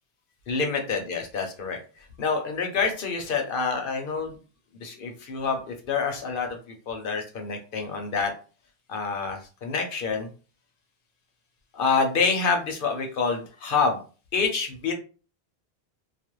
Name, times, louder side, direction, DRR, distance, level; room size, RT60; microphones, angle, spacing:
voice 1, 0.5-4.4 4.7-8.3 8.9-10.3 11.7-14.0 14.3-14.9, left 5 dB, 60° left, 3 dB, 0.7 m, -27 dB
2.4 x 2.1 x 2.9 m, 0.36 s
omnidirectional pair, 1.1 m